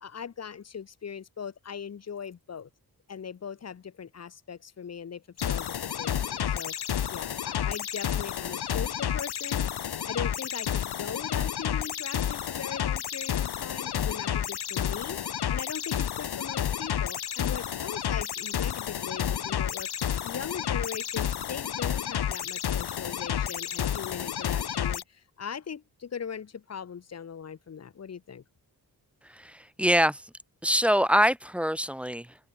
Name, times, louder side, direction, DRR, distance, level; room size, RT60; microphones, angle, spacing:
voice 1, 0.0-2.7 3.1-28.4, left 7 dB, 40° left, 0.7 m, -40 dB
sound 1, 5.4-25.0, left 9 dB, 75° left, 1.1 m, -30 dB
voice 2, 29.2-30.3 30.6-32.4, equal, 5° right, 0.5 m, -25 dB
open air
wide cardioid pair, 105°, 39 cm